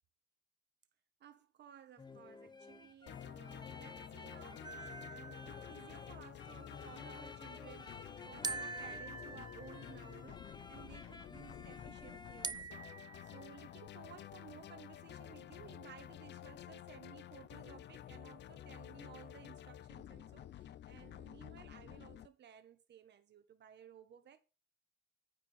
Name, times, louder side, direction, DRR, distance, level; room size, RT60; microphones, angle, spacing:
voice 1, 1.2-12.9 13.2-24.4, right 9 dB, 60° right, 1.4 m, -57 dB
sound 1, 2.0-12.5, left 3 dB, 20° left, 1.2 m, -53 dB
sound 2, 3.1-22.3, left 11 dB, 60° left, 0.6 m, -51 dB
sound 3, 4.6-6.1 8.4-10.1 12.4-13.5, right 4 dB, 20° right, 0.5 m, -45 dB
9.3 x 4.8 x 7.5 m
cardioid pair, 90°, 20 cm